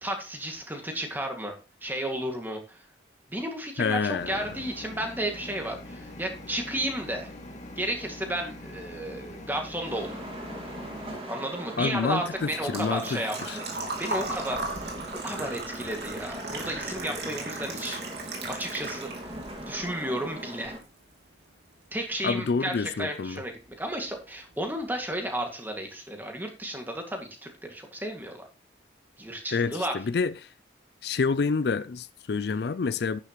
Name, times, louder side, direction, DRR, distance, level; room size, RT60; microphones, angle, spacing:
voice 1, 0.0-1.5 1.8-2.8 3.3-7.3 7.8-10.3 11.3-13.6 14.0-19.1 19.7-20.8 21.9-28.5 29.2-29.9, right 1 dB, 10° right, 2.1 m, -33 dB
voice 2, 3.8-4.4 11.8-13.6 17.9-18.0 22.2-23.4 29.5-30.3 31.0-33.2, left 4 dB, 60° left, 0.4 m, -28 dB
sound 1, 4.2-11.2, left 1 dB, 40° left, 2.3 m, -43 dB
sound 2, 9.8-20.8, right 1 dB, 30° right, 2.0 m, -40 dB
Engine / Trickle dribble / Fill (with liquid), 12.5-19.5 19.8-20.8 21.1-21.2 23.1-23.2 23.4-23.7 24.1-24.2 24.4-24.5, right 3 dB, 65° right, 3.0 m, -37 dB
10.5 x 9.8 x 3.0 m
head